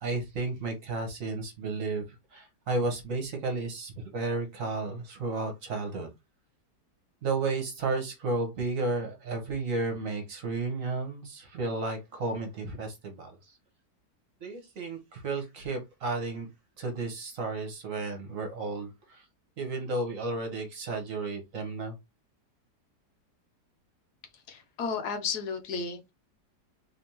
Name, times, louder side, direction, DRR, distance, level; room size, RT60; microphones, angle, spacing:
voice 1, 0.0-2.0 2.3-6.1 7.2-13.4 14.4-16.5 16.8-19.2 19.6-21.9, right 3 dB, 55° right, 1.4 m, -33 dB
voice 2, 24.5-26.1, left 5 dB, 75° left, 1.4 m, -33 dB
3.5 x 3.4 x 2.9 m
omnidirectional pair, 1.7 m